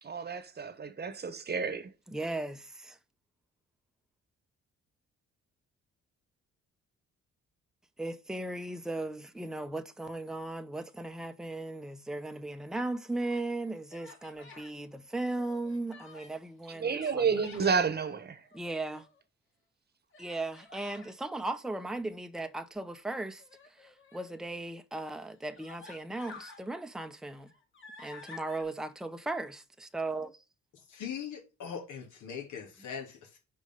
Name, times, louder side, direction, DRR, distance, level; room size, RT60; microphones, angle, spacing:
voice 1, 0.0-1.9 16.8-18.4, right 5 dB, 35° right, 1.1 m, -30 dB
voice 2, 2.1-3.0 8.0-17.4 18.5-19.1 20.2-23.4 23.7-27.5 28.0-30.4, right 2 dB, ahead, 0.7 m, -37 dB
Human voice, 12.9-13.5 13.9-14.7 15.2-16.4 16.8-17.8 18.4-19.2 20.1-21.1 23.4-24.3 25.0-25.1 25.5-26.6 27.1-28.6, left 4 dB, 40° left, 2.7 m, -51 dB
voice 3, 30.7-33.4, left 7 dB, 80° left, 2.6 m, -41 dB
5.3 x 5.0 x 5.3 m
cardioid pair, 90°, 30 cm